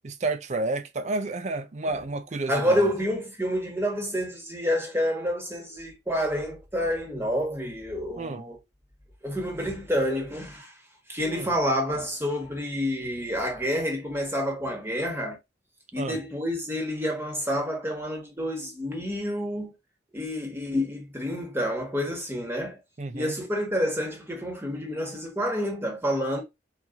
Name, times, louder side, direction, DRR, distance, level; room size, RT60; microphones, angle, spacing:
voice 1, 0.0-2.9 8.2-8.4 11.3-11.5 16.0-16.2 23.0-23.4, right 2 dB, 40° right, 0.5 m, -30 dB
voice 2, 2.5-8.6 9.2-10.7 11.1-15.4 15.9-19.7 20.1-22.8 23.1-26.4, equal, 15° right, 1.5 m, -28 dB
4.4 x 3.9 x 2.8 m
head